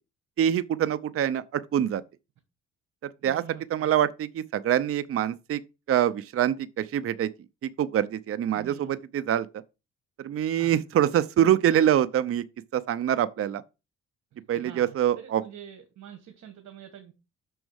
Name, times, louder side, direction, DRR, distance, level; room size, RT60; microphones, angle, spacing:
voice 1, 0.4-2.0 3.2-3.4 3.7-5.6 5.9-7.3 7.6-9.5 10.2-12.4 12.7-13.6 14.5-15.4, right 10 dB, 50° right, 0.6 m, -25 dB
voice 2, 3.2-3.9 8.5-9.0 10.6-10.7 14.3-17.1, right 10 dB, 65° right, 1.4 m, -46 dB
6.3 x 4.6 x 6.3 m
cardioid pair, 90°, 30 cm